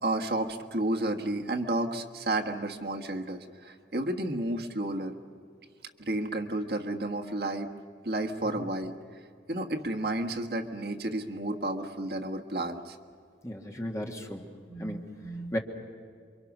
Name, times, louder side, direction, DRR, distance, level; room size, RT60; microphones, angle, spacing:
voice 1, 0.0-5.1 6.0-7.7 8.0-8.9 9.5-13.0 14.7-15.5, right 1 dB, 60° right, 5 dB, 1.5 m, -32 dB
voice 2, 13.4-14.5 14.8-15.1 15.5-15.6, equal, 15° left, 2 dB, 1.7 m, -35 dB
28.0 x 24.0 x 6.2 m, 2.2 s
head